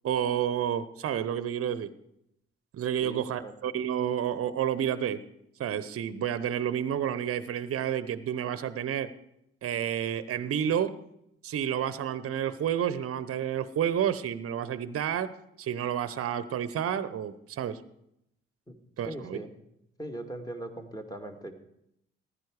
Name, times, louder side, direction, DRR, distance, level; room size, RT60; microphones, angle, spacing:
voice 1, 0.0-1.9 2.7-5.2 5.6-9.1 9.6-11.0 11.4-15.3 15.6-17.8 19.0-19.4, right 9 dB, 50° right, 15 dB, 0.9 m, -30 dB
voice 2, 3.0-3.5 18.7-18.8 19.1-19.5 20.0-21.5, right 1 dB, 10° left, 6 dB, 2.2 m, -39 dB
15.0 x 11.5 x 4.8 m, 0.78 s
hypercardioid pair, 50°, 30 cm